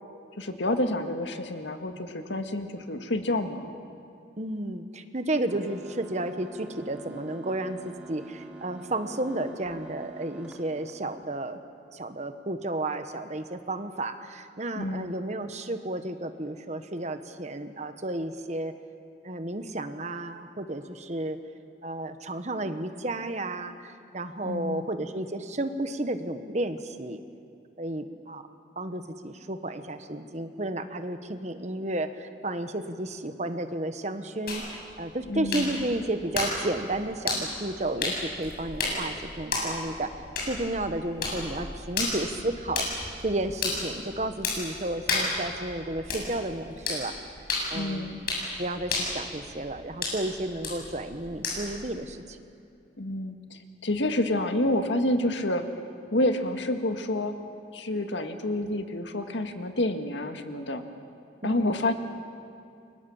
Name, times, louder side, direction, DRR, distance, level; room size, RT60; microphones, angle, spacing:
voice 1, 0.4-3.7 14.8-15.1 24.4-24.9 35.3-35.8 47.7-48.2 53.0-55.6 56.1-57.3 57.7-60.8 61.4-61.9, left 1 dB, 85° left, 6 dB, 1.9 m, -28 dB
voice 2, 4.4-11.6 11.9-18.7 19.2-21.4 21.8-27.2 27.8-28.4 28.7-40.1 40.4-42.9 43.2-47.1 47.7-48.3 48.6-52.4 61.4-61.7, right 1 dB, 40° right, 9 dB, 1.3 m, -32 dB
sound 1, 5.5-11.4, right 2 dB, 5° right, 3.3 m, -46 dB
sound 2, 34.5-51.9, left 3 dB, 55° left, 7.8 m, -34 dB
29.5 x 24.0 x 7.2 m, 2.5 s
head